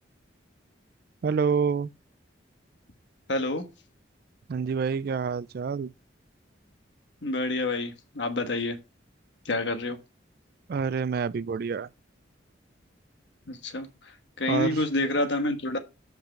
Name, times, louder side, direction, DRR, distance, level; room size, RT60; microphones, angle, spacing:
voice 1, 1.2-1.9 4.5-5.9 10.7-11.9 14.5-14.8, right 6 dB, 50° right, 0.3 m, -27 dB
voice 2, 3.3-3.7 7.2-8.8 9.4-10.0 13.5-15.8, left 2 dB, 65° left, 1.3 m, -28 dB
7.8 x 5.4 x 4.4 m
head